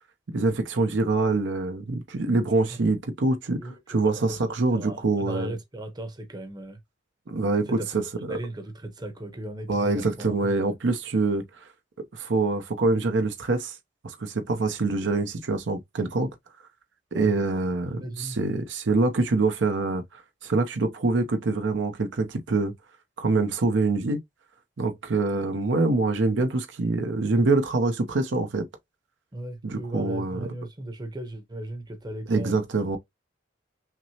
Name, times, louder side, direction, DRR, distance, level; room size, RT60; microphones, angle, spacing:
voice 1, 0.3-3.6 3.9-5.5 7.3-8.0 8.3-8.4 9.7-11.4 12.1-13.8 14.0-16.3 17.1-22.7 23.2-24.2 24.8-28.7 29.6-30.4 32.3-33.0, right 3 dB, 70° right, 0.6 m, -25 dB
voice 2, 3.6-4.4 4.7-6.8 7.7-8.0 8.3-10.6 17.1-17.3 17.8-18.4 29.3-32.6, right 1 dB, 20° right, 0.8 m, -36 dB
5.9 x 2.0 x 2.8 m
head